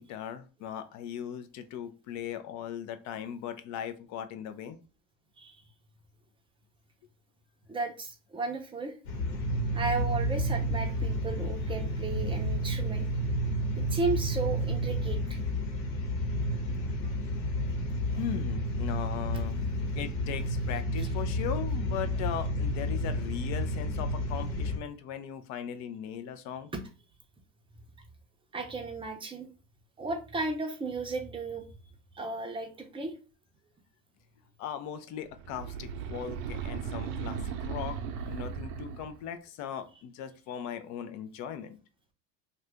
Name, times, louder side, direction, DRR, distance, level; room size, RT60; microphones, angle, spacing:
voice 1, 0.0-4.8 18.2-26.7 34.6-38.0 38.3-41.8, left 9 dB, 45° left, 10 dB, 0.5 m, -38 dB
voice 2, 7.7-8.9 9.7-13.1 13.8-15.4 26.7-26.8 28.5-29.5 30.0-31.7 32.1-33.1, right 3 dB, 15° right, 4 dB, 0.6 m, -34 dB
sound 1, 9.1-24.8, equal, 65° left, 1.1 m, -31 dB
sound 2, 35.3-39.3, right 6 dB, 65° right, 0.6 m, -37 dB
2.7 x 2.4 x 3.3 m, 0.34 s
supercardioid pair, 110°, 39 cm